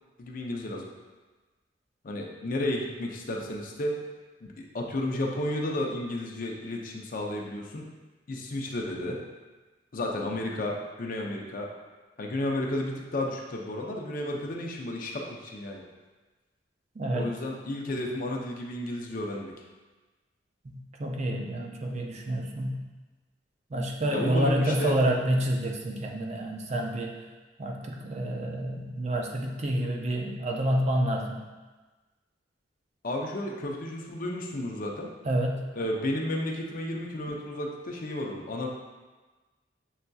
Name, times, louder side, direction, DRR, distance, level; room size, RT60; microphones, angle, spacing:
voice 1, 0.2-0.9 2.0-4.0 4.4-7.8 8.3-9.2 9.9-11.7 12.2-15.8 17.1-19.5 24.1-25.0 33.0-35.1 35.7-38.7, left 1 dB, 50° left, 0 dB, 0.5 m, -32 dB
voice 2, 17.0-17.3 20.6-22.8 23.7-27.1 27.6-31.4 35.3-35.6, right 1 dB, 40° right, 1 dB, 0.4 m, -28 dB
7.0 x 2.6 x 2.3 m, 1.2 s
head